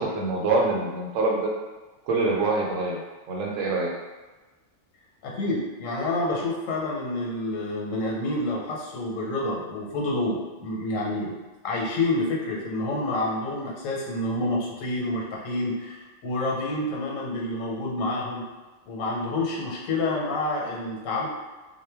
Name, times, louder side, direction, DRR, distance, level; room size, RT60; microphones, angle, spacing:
voice 1, 0.0-1.5 2.0-3.0 3.3-3.9, right 3 dB, 85° right, -1 dB, 1.0 m, -25 dB
voice 2, 5.2-11.3 11.6-18.4 18.9-21.3, left 2 dB, 90° left, -2 dB, 1.0 m, -28 dB
2.1 x 2.1 x 3.3 m, 1.2 s
omnidirectional pair, 1.3 m